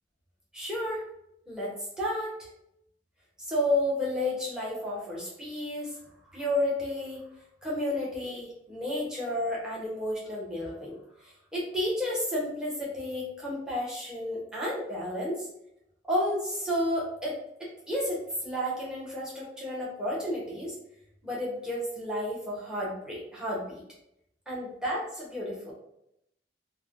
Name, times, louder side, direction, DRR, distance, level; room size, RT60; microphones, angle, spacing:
voice 1, 0.5-1.1 1.5-2.4 3.4-6.0 6.3-7.3 7.6-11.0 11.2-15.5 16.1-17.3 17.6-20.7 21.2-23.8 24.5-25.7, left 1 dB, 5° right, -6 dB, 0.9 m, -31 dB
3.3 x 2.1 x 2.5 m, 0.78 s
head